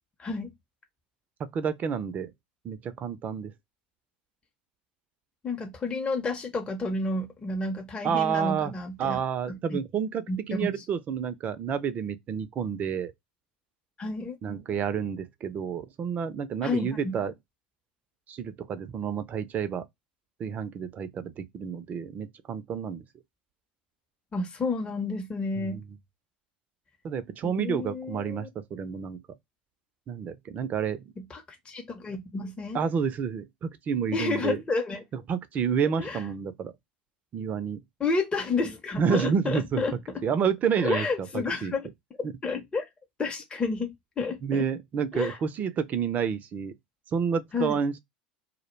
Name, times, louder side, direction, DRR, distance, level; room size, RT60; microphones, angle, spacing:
voice 1, 0.2-0.5 5.4-9.2 9.5-9.8 10.3-10.8 14.0-14.4 16.6-17.2 24.3-25.8 27.4-28.5 31.2-32.8 34.1-35.0 36.0-36.2 38.0-40.0 40.8-41.9 42.2-42.8 43.2-44.6 45.1-45.4 47.5-47.8, left 3 dB, 20° left, 0.6 m, -31 dB
voice 2, 1.5-2.3 2.6-3.5 8.0-8.7 9.0-13.1 14.4-17.3 18.3-19.8 20.4-23.0 25.6-25.8 27.0-29.2 30.1-31.0 32.7-34.6 35.3-36.7 37.3-37.8 39.0-39.8 40.2-41.1 41.3-41.7 44.4-46.7 47.1-48.0, right 7 dB, 40° right, 0.4 m, -29 dB
2.2 x 2.1 x 3.0 m
hypercardioid pair, 80°, 4 cm